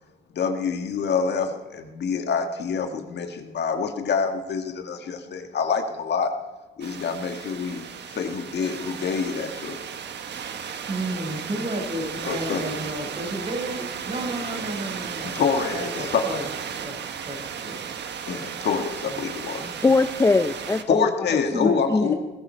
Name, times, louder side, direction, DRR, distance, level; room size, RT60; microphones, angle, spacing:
voice 1, 0.3-6.3 6.8-9.8 12.2-12.7 15.3-16.4 18.3-19.7 20.9-22.1, left 5 dB, 60° left, 5 dB, 1.6 m, -26 dB
sound 1, 6.8-20.8, right 7 dB, 60° right, 1.3 m, -35 dB
voice 2, 10.9-15.4 15.7-16.5 16.8-17.8 19.1-19.2 19.6-19.7 21.5-21.7 22.0-22.2, right 1 dB, 35° right, 3 dB, 4.7 m, -32 dB
voice 3, 19.8-21.1 21.5-22.1, left 3 dB, 15° left, 10 dB, 0.5 m, -21 dB
20.5 x 14.0 x 4.5 m, 1.1 s
cardioid pair, 90°, 20 cm